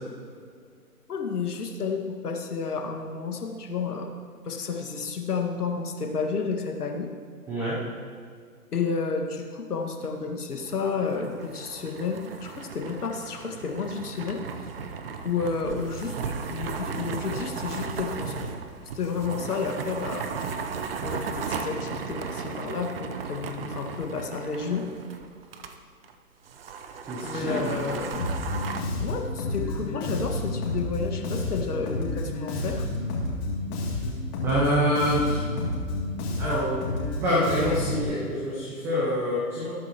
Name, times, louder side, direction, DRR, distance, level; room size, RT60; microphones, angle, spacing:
voice 1, 1.1-4.2 4.4-7.1 8.7-14.4 15.2-18.5 18.9-20.3 21.0-24.8 27.2-28.1 29.0-32.9, left 5 dB, 70° left, 2 dB, 2.0 m, -31 dB
voice 2, 7.5-7.9 27.1-27.9 34.4-35.5 36.4-36.8 37.2-39.8, equal, 5° right, -6 dB, 0.7 m, -26 dB
sound 1, 10.6-25.7 26.0-26.1 26.5-28.8, right 5 dB, 40° right, 0.8 m, -36 dB
Bass guitar, 28.1-38.0, left 2 dB, 25° left, 2.8 m, -30 dB
20.0 x 8.9 x 3.0 m, 2.1 s
hypercardioid pair, 145°, 47 cm